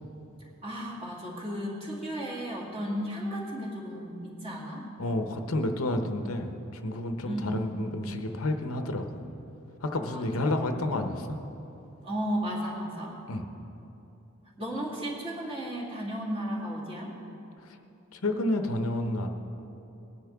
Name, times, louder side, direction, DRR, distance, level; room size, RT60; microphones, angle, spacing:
voice 1, 0.6-4.9 7.2-7.8 10.0-10.8 12.0-13.2 14.6-17.2, equal, 25° right, -5 dB, 2.4 m, -34 dB
voice 2, 5.0-9.2 9.8-11.4 13.3-13.4 17.7-17.8 18.1-19.3, left 1 dB, 75° left, 5 dB, 0.9 m, -30 dB
20.0 x 10.5 x 3.5 m, 2.9 s
head